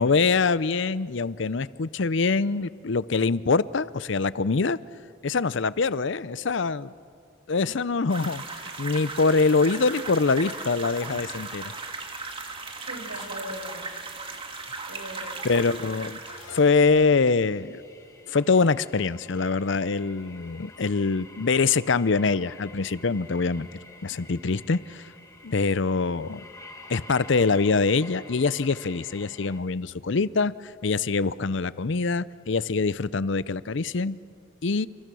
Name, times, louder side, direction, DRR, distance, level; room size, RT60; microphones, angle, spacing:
voice 1, 0.0-4.8 5.2-6.9 7.5-11.7 15.4-16.2 16.5-17.8 18.3-23.7 24.0-25.0 25.4-26.5 26.9-34.2 34.6-34.9, left 4 dB, 60° left, 17 dB, 0.6 m, -24 dB
sound 1, 8.1-16.8, right 3 dB, 25° right, 2.0 m, -37 dB
voice 2, 12.6-13.9 14.9-15.4, equal, 75° right, 3 dB, 6.2 m, -40 dB
sound 2, 16.3-19.6, left 2 dB, 85° left, 1.4 m, -51 dB
sound 3, 16.5-29.6, left 2 dB, 15° left, 1.9 m, -49 dB
29.5 x 28.0 x 6.3 m, 2.3 s
head